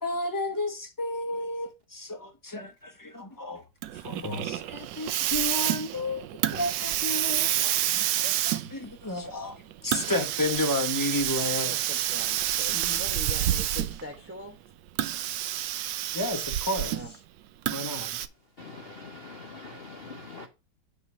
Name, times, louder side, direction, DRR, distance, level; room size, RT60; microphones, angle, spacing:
voice 1, 0.0-3.6 3.9-6.2 6.5-11.7 12.7-13.0 16.1-17.0 17.7-18.2, left 2 dB, 15° left, 0.8 m, -32 dB
Hiss, 3.8-14.1 14.9-17.2 17.7-18.3, right 12 dB, 75° right, 1.2 m, -29 dB
voice 2, 11.6-14.6 16.9-17.1, left 1 dB, 15° right, 0.4 m, -42 dB
voice 3, 18.6-20.5, left 3 dB, 45° left, 0.8 m, -43 dB
9.4 x 3.1 x 6.1 m
omnidirectional pair, 2.2 m